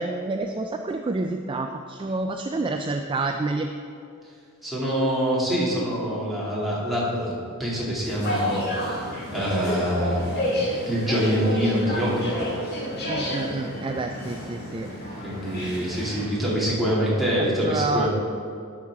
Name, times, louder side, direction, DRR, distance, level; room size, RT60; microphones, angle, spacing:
voice 1, 0.0-3.7 13.1-14.9 15.6-15.8 17.6-18.1, right 3 dB, 25° right, 5 dB, 0.3 m, -28 dB
voice 2, 4.6-7.3 7.6-9.1 9.3-12.5 15.2-18.1, equal, ahead, -8 dB, 2.5 m, -25 dB
sound 1, 8.0-16.2, left 1 dB, 50° left, 2.1 m, -30 dB
11.5 x 5.7 x 4.7 m, 2.4 s
head